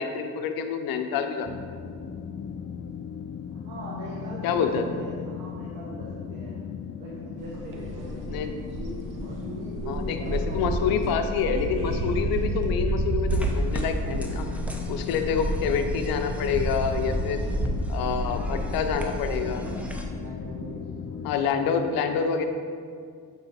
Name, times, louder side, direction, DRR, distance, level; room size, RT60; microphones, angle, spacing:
voice 1, 0.0-1.5 4.4-4.8 8.3-8.5 9.9-14.5 14.9-17.4 17.9-19.6 21.2-22.5, left 6 dB, 90° left, 7 dB, 0.6 m, -27 dB
sound 1, 1.4-21.4, left 7 dB, 45° left, 0.5 m, -37 dB
voice 2, 3.5-6.6 7.0-11.0 18.0-19.5 20.0-21.3, right 1 dB, 85° right, -5 dB, 1.2 m, -41 dB
sound 2, 7.4-18.9, right 2 dB, 65° right, 0.9 m, -31 dB
sound 3, 13.3-20.1, equal, 5° right, 0.7 m, -34 dB
7.9 x 4.1 x 4.2 m, 2.2 s
cardioid pair, 75°, 35 cm